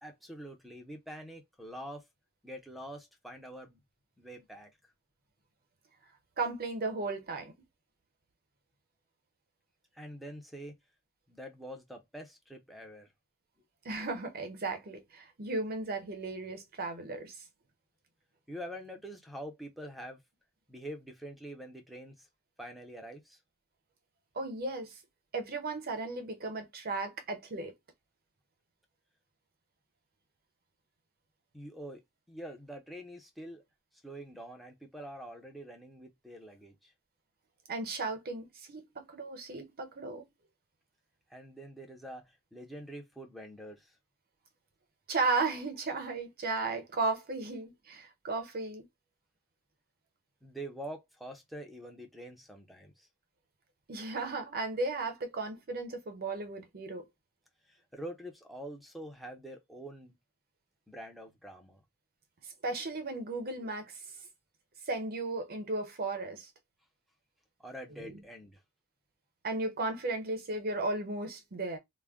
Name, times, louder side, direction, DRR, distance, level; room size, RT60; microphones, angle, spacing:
voice 1, 0.0-2.1 2.4-3.8 4.2-4.9 9.9-10.8 11.3-13.1 18.5-20.2 20.7-22.3 22.6-23.4 31.5-32.0 32.3-33.6 34.0-36.9 41.3-44.0 50.4-53.1 57.7-60.2 60.9-61.8 67.6-68.6, right 1 dB, ahead, 0.6 m, -45 dB
voice 2, 6.4-7.5 13.8-17.4 24.3-25.0 25.3-27.7 37.7-40.3 45.1-48.8 53.9-57.0 62.6-64.0 64.9-66.5 67.9-68.2 69.4-71.8, right 3 dB, 45° right, 0.7 m, -35 dB
2.2 x 2.1 x 3.5 m
head